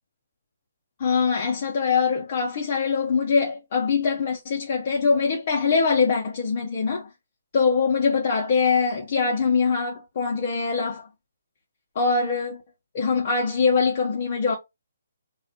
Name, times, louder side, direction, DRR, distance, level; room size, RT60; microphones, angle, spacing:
voice 1, 1.0-7.1 7.5-11.1 12.0-12.6 12.9-14.5, left 5 dB, 45° left, 0.6 m, -23 dB
2.4 x 2.1 x 2.7 m
hypercardioid pair, 145°, 0 cm